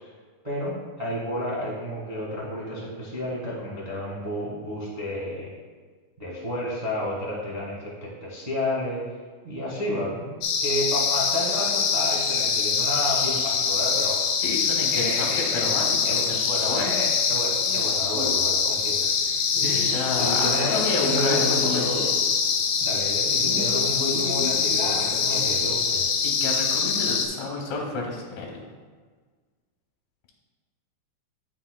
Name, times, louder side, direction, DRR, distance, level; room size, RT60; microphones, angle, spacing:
voice 1, 0.4-5.5 6.2-9.1 9.4-10.3 10.6-14.2 14.9-15.7 16.0-19.0 19.6-22.1 22.8-26.0, left 1 dB, 80° right, -7 dB, 0.3 m, -31 dB
sound 1, 10.4-27.3, left 6 dB, 85° left, 2.1 m, -24 dB
voice 2, 14.4-17.0 19.6-21.9 26.2-28.6, left 3 dB, 70° left, 0 dB, 2.0 m, -30 dB
Male speech man speaking, 17.6-26.2, left 2 dB, 45° left, 1.9 m, -37 dB
9.8 x 5.6 x 2.2 m, 1.5 s
omnidirectional pair, 3.7 m